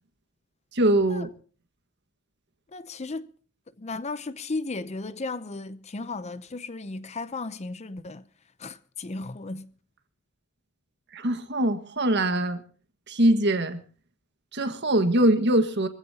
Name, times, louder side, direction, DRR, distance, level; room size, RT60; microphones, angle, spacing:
voice 1, 0.7-1.3 11.1-12.6 13.1-13.8 14.5-15.9, right 1 dB, 50° right, 1.6 m, -22 dB
voice 2, 2.7-3.3 3.8-8.3 8.6-9.7, left 3 dB, 30° left, 0.7 m, -35 dB
23.0 x 15.5 x 2.9 m
head